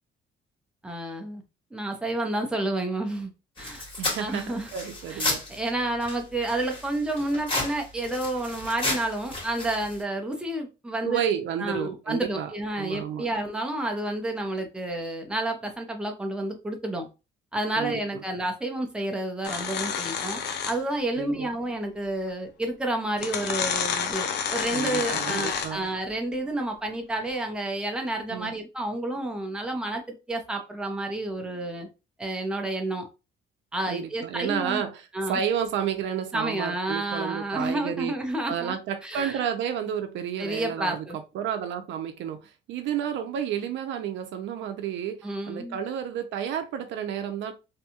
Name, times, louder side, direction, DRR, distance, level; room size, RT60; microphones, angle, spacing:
voice 1, 0.8-1.4 1.7-3.3 3.6-3.9 4.2-4.7 5.1-11.2 11.6-17.1 17.5-20.4 20.7-30.0 30.3-31.9 32.2-33.0 33.7-34.8 35.1-35.4 36.3-38.7 39.0-39.4 40.4-41.2 45.2-45.8, right 1 dB, 5° right, 0.6 m, -30 dB
sound 1, 3.6-5.7 6.0-10.0, left 2 dB, 25° left, 1.6 m, -33 dB
voice 2, 4.0-5.4 11.0-12.5 12.8-13.3 17.8-18.0 21.1-21.5 24.7-25.9 28.3-28.5 33.9-38.1 38.5-47.5, right 9 dB, 75° right, 0.5 m, -31 dB
sound 2, 19.4-21.0 22.3-22.4 23.2-25.9, left 7 dB, 60° left, 0.5 m, -29 dB
2.7 x 2.3 x 2.8 m
cardioid pair, 125°, 19 cm